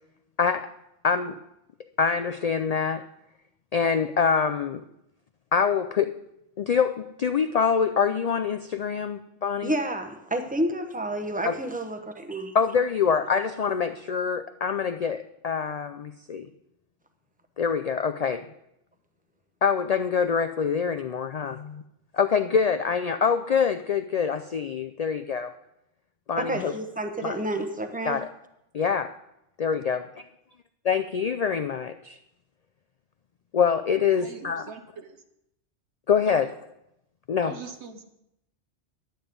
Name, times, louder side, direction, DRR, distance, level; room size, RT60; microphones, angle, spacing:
voice 1, 0.4-0.7 1.0-1.4 2.0-3.0 3.7-4.8 5.5-6.1 6.6-9.7 11.4-11.6 12.5-16.5 17.6-18.5 19.6-21.8 22.1-25.5 26.3-26.7 27.2-27.4 28.1-28.3 28.7-29.1 29.6-30.1 30.8-32.2 33.5-34.7 36.1-36.5 37.3-37.5, left 6 dB, 70° left, 9 dB, 0.3 m, -25 dB
voice 2, 9.6-12.5 26.4-28.2, right 1 dB, 10° right, 6 dB, 0.8 m, -30 dB
voice 3, 34.1-35.2 36.3-36.5 37.4-38.0, right 5 dB, 70° right, 7 dB, 1.3 m, -41 dB
11.0 x 9.1 x 5.2 m, 0.83 s
omnidirectional pair, 1.2 m